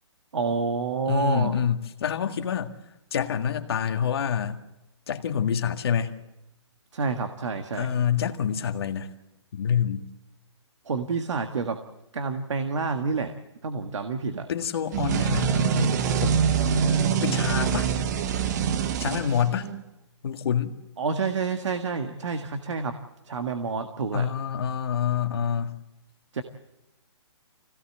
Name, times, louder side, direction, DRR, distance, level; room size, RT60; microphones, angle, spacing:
voice 1, 0.3-1.6 6.9-7.9 10.9-11.8 12.1-13.3 13.6-14.5 21.0-23.0 23.3-24.3 26.3-26.4, right 4 dB, 80° right, 7 dB, 1.7 m, -28 dB
voice 2, 1.1-2.7 3.1-4.6 5.1-6.1 7.7-9.1 9.5-10.0 14.5-17.9 19.0-19.7 20.2-20.7 24.1-25.8, left 8 dB, 55° left, 6 dB, 1.8 m, -27 dB
sound 1, 14.9-19.8, right 7 dB, 35° right, 1.1 m, -24 dB
24.5 x 17.0 x 7.7 m, 0.97 s
hypercardioid pair, 160°, 15 cm